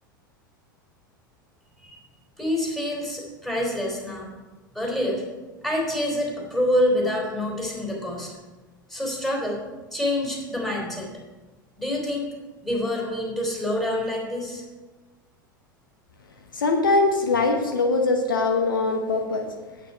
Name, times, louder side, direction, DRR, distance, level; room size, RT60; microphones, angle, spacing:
voice 1, 2.4-4.3 4.7-5.2 5.6-8.3 8.9-9.6 9.9-11.1 11.8-12.3 12.6-14.6, left 1 dB, ahead, -3 dB, 3.4 m, -26 dB
voice 2, 16.5-19.5, left 3 dB, 75° left, 4 dB, 1.1 m, -22 dB
9.3 x 8.4 x 5.2 m, 1.2 s
figure-of-eight pair, 85°, 11 cm